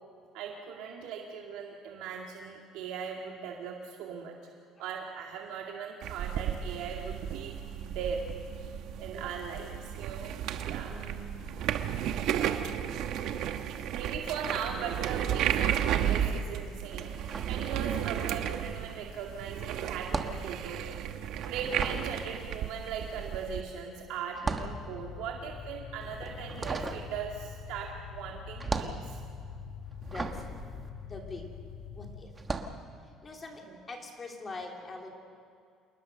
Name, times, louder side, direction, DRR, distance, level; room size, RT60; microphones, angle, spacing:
voice 1, 0.3-4.4 4.8-8.2 9.0-11.2 11.8-12.3 13.9-17.2 17.4-20.8 21.4-29.2 33.6-33.8, right 6 dB, 80° right, 0 dB, 2.2 m, -39 dB
sound 1, 6.0-23.6, right 10 dB, 60° right, 1.2 m, -33 dB
voice 2, 10.9-11.7 30.0-30.4 31.0-31.5 31.9-32.3 33.2-35.1, left 2 dB, 20° left, 1 dB, 3.0 m, -43 dB
sound 2, 17.1-18.3 18.6-31.8 32.3-32.8, right 3 dB, 20° right, 1.3 m, -38 dB
sound 3, 24.5-32.2, left 7 dB, 75° left, 2.2 m, -44 dB
28.0 x 20.0 x 6.7 m, 2.3 s
cardioid pair, 160°, 0 cm